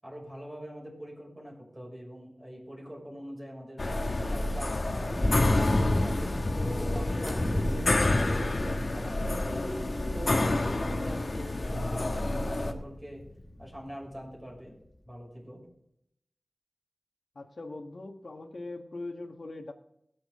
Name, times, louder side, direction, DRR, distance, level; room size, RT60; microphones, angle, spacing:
voice 1, 0.0-3.8 4.2-9.5 10.1-13.2 13.6-14.8 15.0-15.6, equal, 25° right, -2 dB, 6.3 m, -44 dB
sound 1, 3.8-12.7, left 2 dB, 60° left, 1.3 m, -29 dB
Thunder / Rain, 4.3-13.8, left 1 dB, 35° left, 1.6 m, -33 dB
sound 2, 7.3-8.2, right 1 dB, 45° right, 2.9 m, -52 dB
voice 2, 17.3-19.7, left 2 dB, 75° left, 4 dB, 1.7 m, -41 dB
22.5 x 7.6 x 3.8 m, 0.77 s
wide cardioid pair, 45°, 0 cm